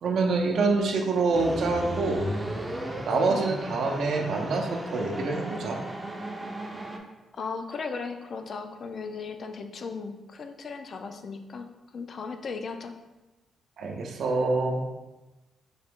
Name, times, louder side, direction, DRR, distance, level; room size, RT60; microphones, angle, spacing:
voice 1, 0.0-2.2 3.1-5.8 13.8-14.8, right 3 dB, 65° right, 2 dB, 0.6 m, -26 dB
sound 1, 1.3-7.0, right 1 dB, 15° right, 0.5 m, -34 dB
voice 2, 7.3-11.7 11.9-13.0, left 4 dB, 45° left, 7 dB, 0.3 m, -36 dB
4.1 x 2.8 x 3.5 m, 1.1 s
cardioid pair, 135°, 0 cm